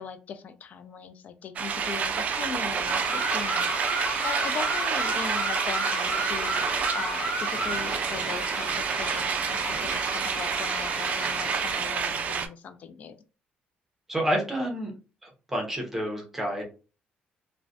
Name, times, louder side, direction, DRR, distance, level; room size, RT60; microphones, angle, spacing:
voice 1, 0.0-13.2, left 6 dB, 50° left, 10 dB, 0.3 m, -39 dB
sound 1, 1.6-12.5, right 6 dB, 45° right, 0.3 m, -29 dB
sound 2, 2.9-11.9, right 1 dB, 15° left, 1.1 m, -33 dB
voice 2, 14.1-14.9 15.5-16.6, equal, 10° right, -1 dB, 0.7 m, -28 dB
2.4 x 2.1 x 2.4 m, 0.34 s
cardioid pair, 135°, 3 cm